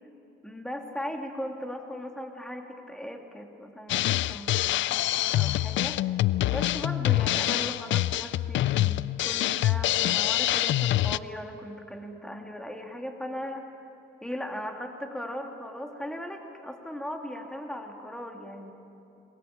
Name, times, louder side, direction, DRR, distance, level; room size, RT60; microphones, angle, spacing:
voice 1, 0.4-6.0 6.5-13.6 14.2-18.7, equal, 5° left, 3 dB, 2.6 m, -38 dB
Drum kit, 3.9-11.2, left 14 dB, 70° left, 0.5 m, -25 dB
22.0 x 21.0 x 8.8 m, 2.7 s
cardioid pair, 90°, 20 cm